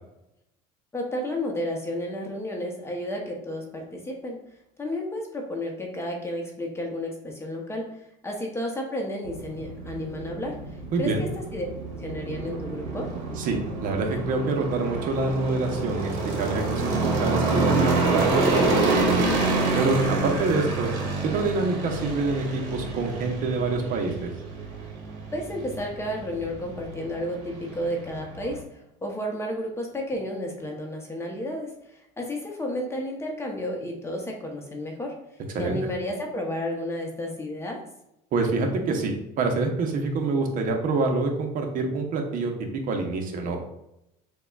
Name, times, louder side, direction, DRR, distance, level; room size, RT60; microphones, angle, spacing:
voice 1, 0.9-4.4 4.8-7.9 8.2-10.6 11.0-11.7 12.0-13.1 25.3-35.2 35.6-37.8, left 1 dB, 15° left, 1 dB, 0.8 m, -32 dB
sound 1, 9.3-28.6, right 3 dB, 70° right, 1.1 m, -28 dB
voice 2, 10.9-11.3 13.4-19.3 19.7-20.9 21.2-24.3 35.5-35.8 38.3-42.5 42.9-43.6, right 3 dB, 50° right, 3 dB, 0.8 m, -26 dB
6.6 x 2.2 x 2.4 m, 0.84 s
cardioid pair, 125°, 18 cm